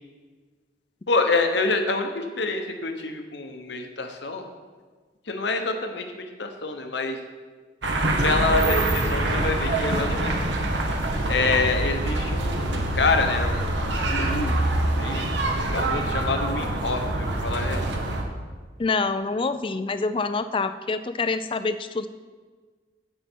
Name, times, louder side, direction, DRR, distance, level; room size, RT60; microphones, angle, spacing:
voice 1, 1.1-4.4 5.3-7.2 8.2-10.5 11.3-13.7 14.1-14.5 15.0-15.3 15.5-17.8, left 3 dB, 75° left, 5 dB, 1.1 m, -27 dB
sound 1, 7.8-18.2, right 2 dB, 85° right, 1.3 m, -25 dB
voice 2, 18.8-22.1, left 4 dB, 30° left, 11 dB, 0.4 m, -26 dB
16.5 x 5.6 x 4.5 m, 1.4 s
head